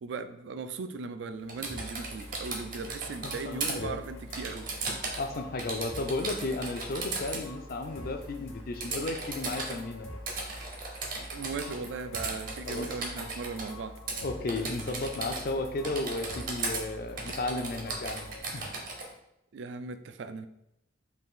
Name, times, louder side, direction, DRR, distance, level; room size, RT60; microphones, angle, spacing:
voice 1, 0.0-4.7 11.3-14.0 19.5-20.5, right 4 dB, 65° right, 10 dB, 0.3 m, -38 dB
Typing, 1.5-3.7 4.3-5.3 5.6-7.4 8.8-9.7 10.3-11.9 12.1-13.7 14.1-14.2 14.5-15.6 15.8-16.8 17.2-19.1, right 3 dB, 45° right, 0.7 m, -36 dB
sound 1, 1.7-18.4, left 1 dB, 75° left, 0.8 m, -46 dB
voice 2, 3.2-4.0 5.2-10.1 12.7-12.9 14.2-18.3 18.5-18.7, left 2 dB, 45° left, 6 dB, 0.4 m, -34 dB
3.9 x 2.6 x 3.7 m, 0.83 s
head